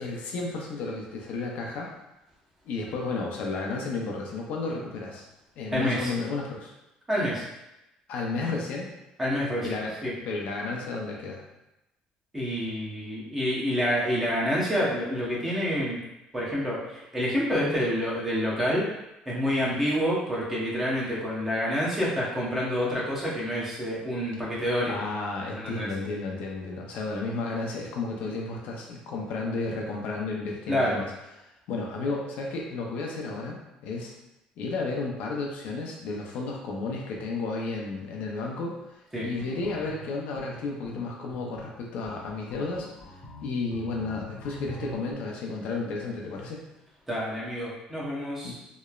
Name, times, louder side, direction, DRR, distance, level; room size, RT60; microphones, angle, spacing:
voice 1, 0.0-1.9 2.7-5.3 5.6-6.7 8.1-8.9 9.6-11.4 19.7-19.8 24.9-31.1 31.7-34.1 34.6-38.8 39.2-46.6 48.4-48.6, left 3 dB, 70° left, -1 dB, 0.5 m, -32 dB
voice 2, 5.7-6.1 7.1-7.4 9.2-10.1 12.3-16.0 16.3-18.8 19.3-25.0 25.6-25.9 30.7-31.0 39.1-39.3 47.1-48.6, equal, 10° right, -6 dB, 0.8 m, -28 dB
sound 1, 39.4-45.1, equal, 30° left, 0.8 m, -44 dB
2.9 x 2.0 x 2.3 m, 0.93 s
cardioid pair, 125°, 3 cm